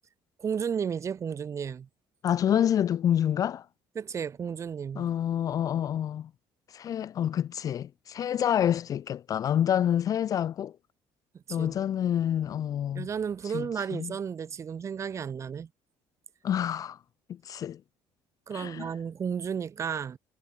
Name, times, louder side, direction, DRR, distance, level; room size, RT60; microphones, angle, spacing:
voice 1, 0.4-1.9 4.0-5.1 11.3-11.7 12.9-15.7 18.5-20.2, right 7 dB, 30° right, 3.6 m, -33 dB
voice 2, 2.2-3.7 5.0-6.3 6.7-10.8 11.5-13.1 13.4-14.1 16.4-17.0 17.3-17.8 18.5-18.9, left 10 dB, 40° left, 0.5 m, -28 dB
cardioid pair, 155°, 9 cm